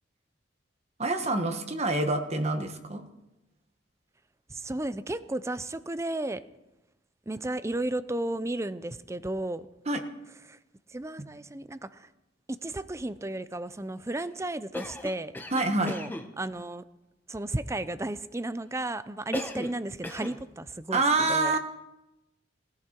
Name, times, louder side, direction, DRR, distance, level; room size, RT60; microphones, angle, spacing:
voice 1, 1.0-3.0 9.9-10.0 11.2-11.3 15.5-15.9 20.9-21.6, right 2 dB, 35° right, 6 dB, 1.3 m, -26 dB
voice 2, 4.5-6.4 7.3-9.7 10.5-10.6 10.9-12.1 12.5-15.3 15.8-16.1 16.4-16.8 17.3-21.6, right 1 dB, 15° right, 14 dB, 0.5 m, -33 dB
Cough, 14.7-16.3 19.3-19.8 20.0-20.4, left 1 dB, 10° left, 1.0 m, -36 dB
19.5 x 15.0 x 4.5 m, 0.94 s
head